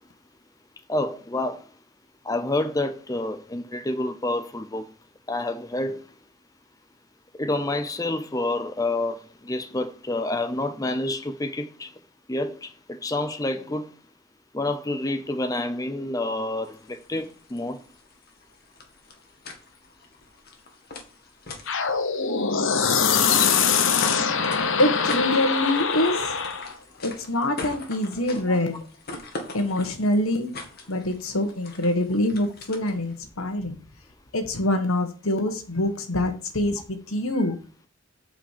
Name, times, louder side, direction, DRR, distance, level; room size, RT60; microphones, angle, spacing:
voice 1, 0.9-1.6 2.2-4.9 5.3-6.0 7.4-11.9 12.3-13.9 14.5-17.8 28.5-28.6, left 2 dB, 15° left, 0.6 m, -28 dB
sound 1, 16.6-33.2, left 3 dB, 45° left, 1.9 m, -42 dB
sound 2, 21.7-26.7, left 6 dB, 60° left, 1.0 m, -23 dB
voice 2, 24.8-26.4 27.0-28.8 29.5-30.5 30.9-33.8 34.3-37.6, left 1 dB, 75° left, 1.7 m, -25 dB
8.7 x 5.1 x 6.7 m
head